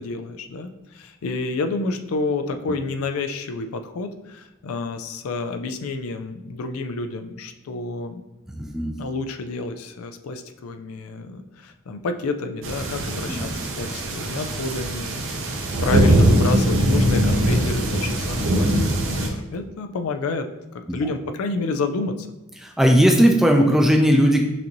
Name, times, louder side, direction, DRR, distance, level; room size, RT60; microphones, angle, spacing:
voice 1, 0.0-8.2 9.0-20.5 20.9-22.3, left 3 dB, 85° left, 7 dB, 0.4 m, -29 dB
voice 2, 8.5-8.9 13.2-13.5 20.9-21.0 22.6-24.4, equal, ahead, 2 dB, 0.4 m, -17 dB
sound 1, 12.6-19.3, right 1 dB, 60° right, 0.7 m, -21 dB
5.9 x 2.6 x 3.0 m, 1.0 s
head